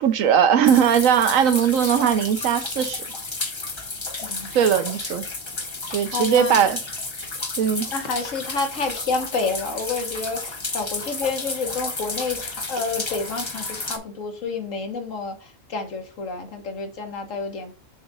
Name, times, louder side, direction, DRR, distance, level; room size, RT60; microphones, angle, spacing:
voice 1, 0.0-3.1 4.5-5.2 5.9-6.8 7.6-7.9, right 8 dB, 70° right, 1.1 m, -19 dB
sound 1, 0.6-14.0, left 3 dB, 25° left, 0.7 m, -32 dB
voice 2, 4.2-4.6 6.1-6.6 7.9-17.7, left 4 dB, 60° left, 1.5 m, -29 dB
7.1 x 2.5 x 5.3 m
omnidirectional pair, 1.5 m